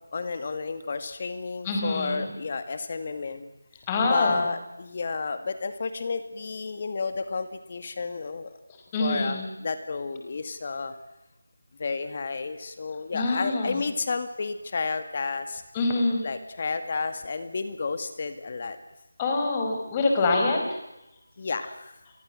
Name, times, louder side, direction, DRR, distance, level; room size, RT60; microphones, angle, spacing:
voice 1, 0.0-3.5 4.0-8.5 9.0-10.9 11.8-15.6 16.2-18.8 21.4-21.9, left 4 dB, 40° left, 10 dB, 2.0 m, -31 dB
voice 2, 1.6-2.3 3.9-4.4 8.9-9.5 13.1-13.8 15.7-16.2 19.2-20.8, left 2 dB, 15° left, 2 dB, 5.0 m, -25 dB
29.0 x 23.0 x 7.7 m, 0.94 s
figure-of-eight pair, 170°, 0 cm